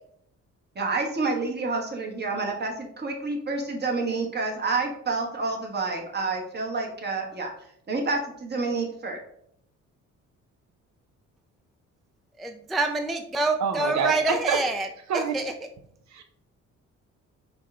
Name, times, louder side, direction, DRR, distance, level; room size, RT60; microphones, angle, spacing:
voice 1, 0.7-7.5 7.9-9.2, right 3 dB, 35° right, 1 dB, 1.1 m, -28 dB
voice 2, 12.4-14.9 15.1-15.5, right 2 dB, ahead, 5 dB, 0.3 m, -26 dB
voice 3, 13.6-14.6 15.1-15.3 16.1-16.2, right 6 dB, 65° right, 6 dB, 0.6 m, -26 dB
5.3 x 2.2 x 3.6 m, 0.70 s
cardioid pair, 90°, 30 cm